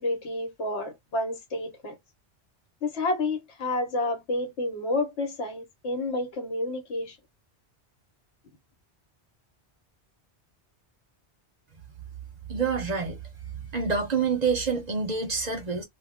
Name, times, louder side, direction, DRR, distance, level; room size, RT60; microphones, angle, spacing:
voice 1, 0.0-1.9 2.8-7.2, left 2 dB, 80° left, 1.3 m, -30 dB
voice 2, 12.5-13.2 13.7-15.8, right 5 dB, 45° right, 0.7 m, -27 dB
2.4 x 2.3 x 3.4 m
omnidirectional pair, 1.1 m